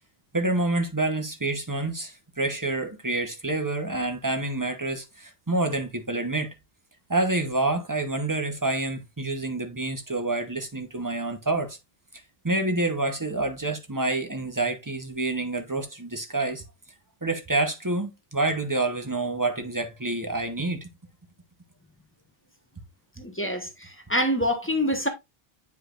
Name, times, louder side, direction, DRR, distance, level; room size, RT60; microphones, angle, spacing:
voice 1, 0.3-6.5 7.1-11.8 12.4-16.6 17.2-20.9, right 2 dB, 20° right, 0.9 m, -28 dB
voice 2, 23.2-25.1, equal, 15° left, 1.0 m, -26 dB
8.2 x 5.0 x 2.5 m
omnidirectional pair, 1.0 m